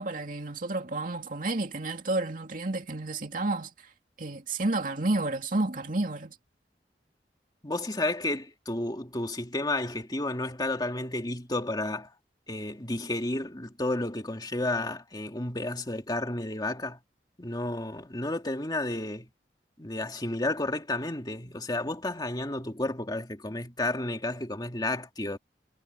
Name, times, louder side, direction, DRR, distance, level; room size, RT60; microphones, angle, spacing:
voice 1, 0.0-3.7 4.2-6.3, right 2 dB, 50° right, 2.5 m, -30 dB
voice 2, 7.6-12.1 12.5-17.0 17.4-19.3 19.8-25.4, left 2 dB, 25° left, 2.3 m, -31 dB
head